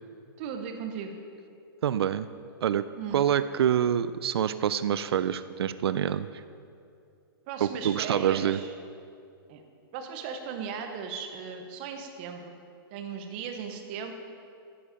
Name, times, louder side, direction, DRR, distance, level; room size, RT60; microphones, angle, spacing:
voice 1, 0.4-1.1 2.9-3.2 7.5-8.7 9.5-9.6 9.9-12.6 12.9-14.1, right 6 dB, 25° right, 5 dB, 0.7 m, -37 dB
voice 2, 1.8-2.3 2.6-2.9 3.1-6.3 7.6-8.6, right 9 dB, 85° right, 13 dB, 0.4 m, -26 dB
11.0 x 7.5 x 5.0 m, 2.4 s
hypercardioid pair, 175°, 13 cm